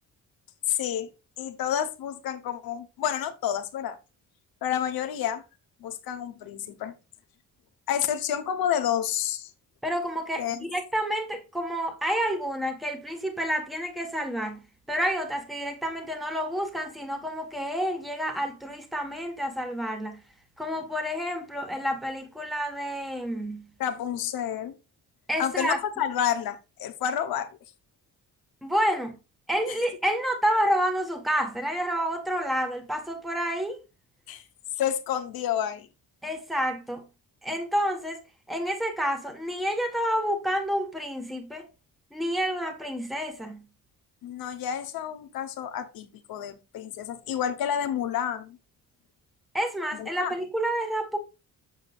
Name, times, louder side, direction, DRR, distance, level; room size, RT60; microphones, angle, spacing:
voice 1, 0.7-1.1 1.4-4.0 4.6-5.4 5.8-6.9 7.9-9.5 10.4-10.6 23.8-24.7 25.4-27.5 29.7-29.8 34.3-34.4 34.8-35.9 44.2-48.6 49.9-50.3, left 9 dB, 85° left, 1.1 m, -29 dB
voice 2, 9.8-20.2 20.6-23.7 25.3-25.8 28.6-29.2 29.5-33.8 36.2-37.0 37.4-38.2 38.5-41.7 42.1-43.6 49.5-51.2, equal, ahead, 1.4 m, -29 dB
7.5 x 7.1 x 2.4 m
cardioid pair, 100°, 35 cm